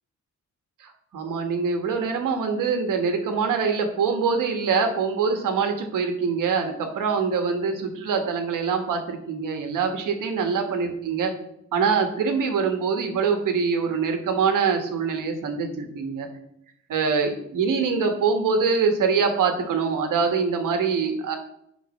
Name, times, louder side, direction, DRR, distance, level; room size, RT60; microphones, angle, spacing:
voice 1, 1.1-11.3 11.7-16.3 16.9-21.4, right 5 dB, 85° right, 5 dB, 1.5 m, -24 dB
7.3 x 5.4 x 6.4 m, 0.77 s
cardioid pair, 100°, 31 cm